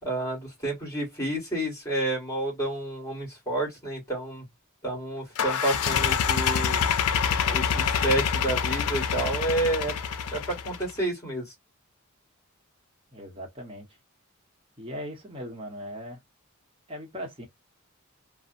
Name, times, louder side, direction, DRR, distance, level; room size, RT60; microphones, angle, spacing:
voice 1, 0.0-4.4 4.8-6.8 7.5-9.9 10.3-11.5, right 1 dB, 15° left, 1.6 m, -30 dB
sound 1, 5.4-10.9, left 7 dB, 80° left, 0.4 m, -26 dB
voice 2, 13.1-13.9 14.8-16.2 16.9-17.5, equal, 25° right, 0.9 m, -38 dB
2.8 x 2.0 x 2.5 m
head